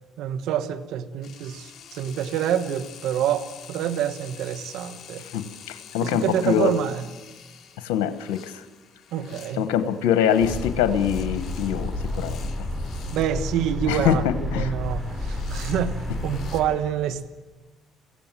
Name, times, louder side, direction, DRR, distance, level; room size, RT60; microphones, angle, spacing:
voice 1, 0.2-5.2 6.0-7.0 9.1-9.7 13.1-17.3, right 9 dB, 75° right, 13 dB, 1.3 m, -27 dB
sound 1, 1.2-13.4 14.8-16.6, left 8 dB, 55° left, 2.8 m, -47 dB
voice 2, 5.2-6.7 7.8-8.6 9.6-12.7 13.9-14.7, left 9 dB, 85° left, 11 dB, 1.1 m, -24 dB
sound 2, 10.4-16.7, left 1 dB, 15° right, 6.9 m, -30 dB
23.0 x 16.5 x 7.5 m, 1.3 s
supercardioid pair, 75°, 0 cm